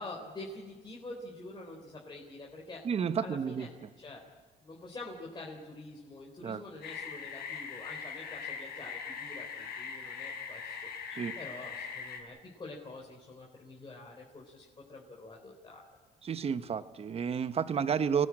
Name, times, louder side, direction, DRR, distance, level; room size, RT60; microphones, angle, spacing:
voice 1, 0.0-2.8 3.2-3.7 4.0-4.2 4.6-10.8 11.4-15.9, left 2 dB, 25° left, -2 dB, 3.8 m, -46 dB
voice 2, 2.8-3.7 6.4-6.6 11.1-11.4 16.2-18.3, right 7 dB, 35° right, 12 dB, 1.0 m, -31 dB
sound 1, 6.8-12.2, left 6 dB, 75° left, 4.9 m, -41 dB
28.0 x 18.5 x 8.7 m, 1.5 s
cardioid pair, 110°, 17 cm